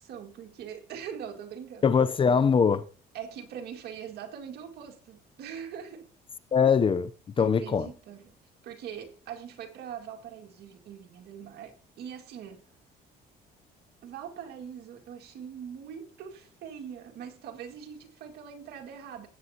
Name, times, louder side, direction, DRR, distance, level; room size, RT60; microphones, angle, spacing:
voice 1, 0.0-1.9 3.1-6.1 7.4-8.4 8.6-12.6 14.0-19.3, right 8 dB, 70° right, 2.1 m, -42 dB
voice 2, 1.8-2.8 6.5-7.1 7.4-7.9, left 6 dB, 30° left, 0.6 m, -22 dB
16.0 x 8.7 x 2.9 m
cardioid pair, 110°, 17 cm